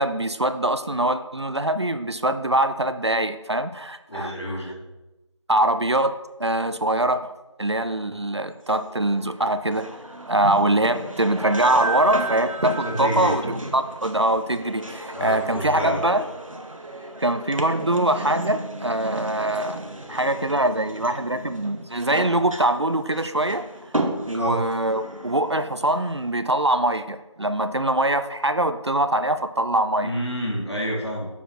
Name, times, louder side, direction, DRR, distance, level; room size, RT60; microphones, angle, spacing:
voice 1, 0.0-4.6 5.5-7.3 7.6-9.9 10.3-16.2 17.2-19.8 20.1-23.7 24.3-30.1, right 1 dB, 55° right, 11 dB, 0.4 m, -23 dB
voice 2, 4.1-4.8 12.8-13.4 15.1-16.0 24.3-24.6 30.0-31.3, equal, 55° left, -2 dB, 1.9 m, -28 dB
sound 1, 8.7-26.3, right 2 dB, 85° right, 1.1 m, -33 dB
6.9 x 4.5 x 4.4 m, 0.97 s
figure-of-eight pair, 175°, 17 cm